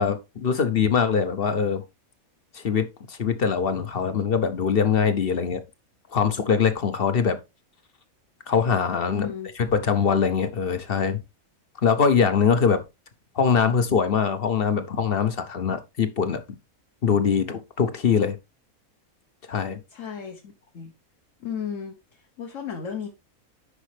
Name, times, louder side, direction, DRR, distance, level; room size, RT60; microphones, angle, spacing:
voice 1, 0.0-1.8 2.5-5.6 6.1-7.4 8.5-11.2 11.8-12.8 13.3-16.4 17.0-18.4 19.5-19.8, left 6 dB, 45° left, 1.0 m, -23 dB
voice 2, 9.1-9.5 19.9-20.9 21.4-23.1, left 7 dB, 60° left, 1.4 m, -34 dB
9.9 x 5.3 x 3.3 m
omnidirectional pair, 1.5 m